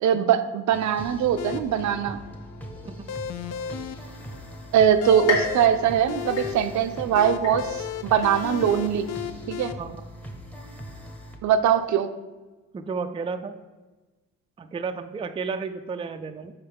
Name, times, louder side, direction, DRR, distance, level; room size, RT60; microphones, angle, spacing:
voice 1, 0.0-2.2 4.7-9.1 9.5-9.7 11.4-12.1, right 9 dB, 70° right, 10 dB, 0.5 m, -22 dB
sound 1, 0.7-11.4, equal, 5° left, 0.9 m, -41 dB
sound 2, 1.4-9.7, left 9 dB, 60° left, 0.5 m, -35 dB
sound 3, 5.3-7.0 7.4-8.0 8.5-8.6 9.6-9.7, left 3 dB, 75° left, 1.8 m, -31 dB
voice 2, 12.7-13.6 14.6-16.5, right 5 dB, 20° right, 8 dB, 0.4 m, -32 dB
5.6 x 4.2 x 5.3 m, 1.2 s
cardioid pair, 90°, 30 cm